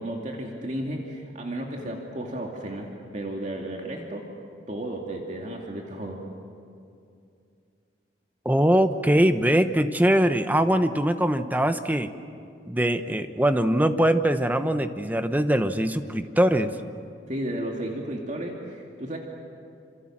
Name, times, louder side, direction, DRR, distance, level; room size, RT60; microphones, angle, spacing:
voice 1, 0.0-4.3 4.7-6.2 17.3-19.2, right 1 dB, 40° right, 0 dB, 2.6 m, -33 dB
voice 2, 8.4-12.1 12.7-16.7, right 1 dB, 10° right, 9 dB, 1.0 m, -22 dB
28.0 x 27.0 x 7.5 m, 2.4 s
head